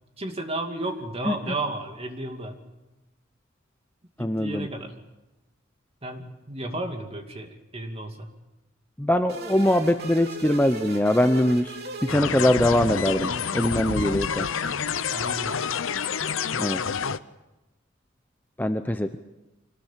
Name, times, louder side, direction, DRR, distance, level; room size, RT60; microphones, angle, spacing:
voice 1, 0.2-2.6 4.2-4.9 6.0-8.3 15.1-15.7, right 2 dB, 30° right, 4 dB, 2.5 m, -33 dB
voice 2, 4.2-4.7 9.0-11.7 12.1-14.5 16.6-16.8 18.6-19.2, left 1 dB, 10° left, 7 dB, 0.7 m, -22 dB
sound 1, 9.3-12.9, right 2 dB, 50° right, 2.8 m, -38 dB
sound 2, 12.1-17.2, left 6 dB, 70° left, 0.7 m, -28 dB
25.0 x 19.5 x 7.5 m, 1.0 s
head